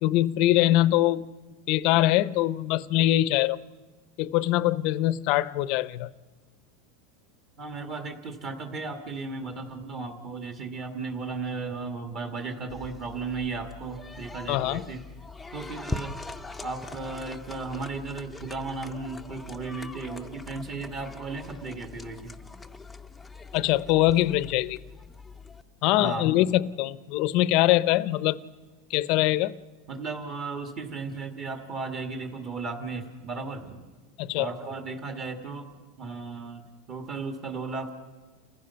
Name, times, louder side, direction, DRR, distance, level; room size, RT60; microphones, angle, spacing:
voice 1, 0.0-1.3 1.7-3.6 4.2-6.1 14.5-14.8 23.5-24.8 25.8-28.4 28.9-29.5 34.2-34.5, left 15 dB, 50° left, 0.7 m, -23 dB
voice 2, 7.6-15.0 15.5-16.1 16.6-22.3 26.0-26.3 29.9-33.9 34.3-35.7 36.0-37.9, right 4 dB, 35° right, 1.9 m, -35 dB
sound 1, 12.7-25.6, left 3 dB, 5° left, 0.7 m, -42 dB
29.5 x 15.0 x 5.8 m
supercardioid pair, 155°, 0 cm